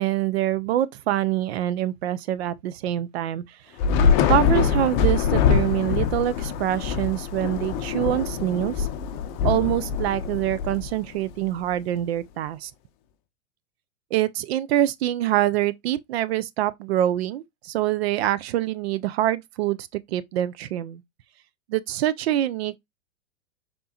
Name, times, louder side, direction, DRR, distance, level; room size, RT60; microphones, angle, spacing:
voice 1, 0.0-3.6 4.3-8.9 9.4-12.7 14.1-21.0 21.7-22.9, right 13 dB, 55° right, 0.4 m, -25 dB
Thunder / Rain, 3.8-11.3, left 6 dB, 35° left, 0.6 m, -23 dB
4.2 x 3.3 x 2.7 m
hypercardioid pair, 120°, 39 cm